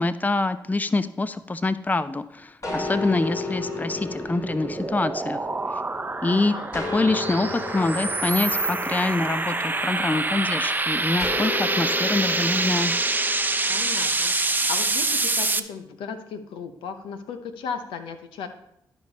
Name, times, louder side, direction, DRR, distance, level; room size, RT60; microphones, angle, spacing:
voice 1, 0.0-5.4 5.7-5.8 6.2-12.9, left 2 dB, 20° left, 13 dB, 0.5 m, -25 dB
sound 1, 2.6-6.2 6.7-10.4 11.2-13.9, left 3 dB, 40° left, 2.6 m, -34 dB
sound 2, 3.6-15.6, right 3 dB, 20° right, 0.7 m, -26 dB
voice 2, 6.2-6.7 13.7-18.5, left 6 dB, 80° left, 7 dB, 0.9 m, -36 dB
12.5 x 5.1 x 4.1 m, 0.77 s
supercardioid pair, 45°, 8 cm